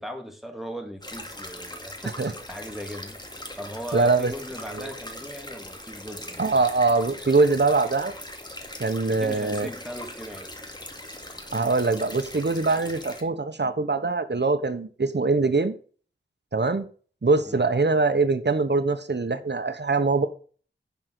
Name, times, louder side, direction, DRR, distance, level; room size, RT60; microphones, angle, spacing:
voice 1, 0.0-3.2 3.6-6.6 9.1-10.5 12.8-12.9 17.4-17.6, equal, ahead, 4 dB, 2.5 m, -38 dB
sound 1, 1.0-13.2, left 1 dB, 20° left, 2.2 m, -40 dB
voice 2, 3.9-4.3 4.8-4.9 6.4-8.1 8.8-9.7 11.5-15.7 16.5-16.8 17.2-20.3, right 3 dB, 60° right, 8 dB, 1.2 m, -23 dB
10.5 x 5.3 x 6.6 m, 0.41 s
wide cardioid pair, 55°, 20 cm